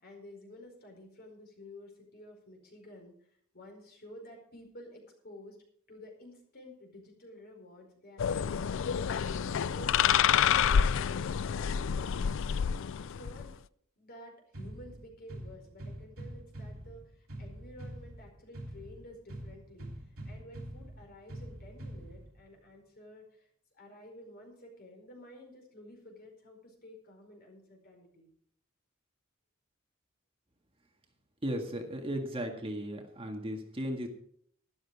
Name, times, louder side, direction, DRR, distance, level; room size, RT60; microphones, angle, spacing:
voice 1, 0.0-3.1 3.5-5.6 5.9-9.2 9.5-12.4 13.0-13.5 14.0-23.5 23.7-28.3, left 1 dB, 50° left, 2 dB, 4.7 m, -51 dB
sound 1, 8.2-13.5, left 8 dB, 65° left, 0.4 m, -28 dB
sound 2, 14.5-22.5, right 1 dB, 85° right, 3.0 m, -45 dB
voice 2, 31.4-34.1, equal, 25° right, 3 dB, 1.8 m, -36 dB
12.5 x 12.0 x 4.7 m, 0.64 s
head